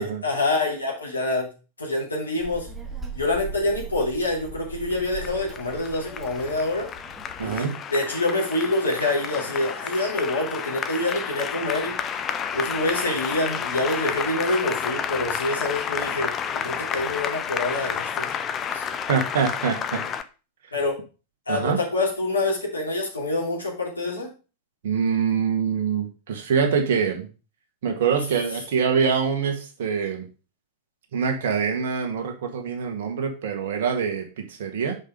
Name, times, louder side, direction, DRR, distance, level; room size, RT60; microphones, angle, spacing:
voice 1, 0.0-1.5 1.8-2.7 3.1-6.9 7.4-12.0 12.5-18.3 18.7-18.9 20.7-21.0 21.5-24.3, left 2 dB, 80° left, -2 dB, 2.7 m, -26 dB
Child speech kid speaking, 2.4-7.7, right 5 dB, 10° right, 1.5 m, -39 dB
Applause, 4.9-20.2, left 7 dB, 25° left, 0.6 m, -30 dB
voice 2, 7.4-7.8 19.1-20.0 21.5-21.8 24.8-27.3 27.8-30.3 31.1-34.9, right 6 dB, 55° right, 4 dB, 1.6 m, -24 dB
5.4 x 5.2 x 5.2 m, 0.33 s
figure-of-eight pair, 90°, 0 cm